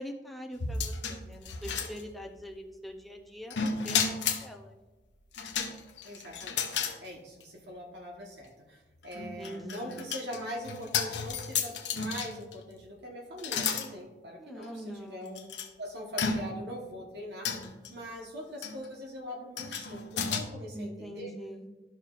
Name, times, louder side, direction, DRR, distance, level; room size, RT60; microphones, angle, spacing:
voice 1, 0.0-4.8 9.1-10.0 14.4-15.4 20.7-21.7, equal, ahead, 1 dB, 0.6 m, -43 dB
sound 1, 0.6-2.4 3.5-4.5 5.3-7.0 7.4-7.5 9.0-12.5 13.4-13.9 14.6-14.7 15.4-15.7 16.2-16.8 17.4-17.9 18.6-18.9 19.6-20.4, left 6 dB, 85° left, 0.8 m, -33 dB
voice 2, 6.0-15.5 15.8-21.3, equal, 75° right, -2 dB, 1.2 m, -42 dB
12.0 x 5.8 x 2.5 m, 1.1 s
head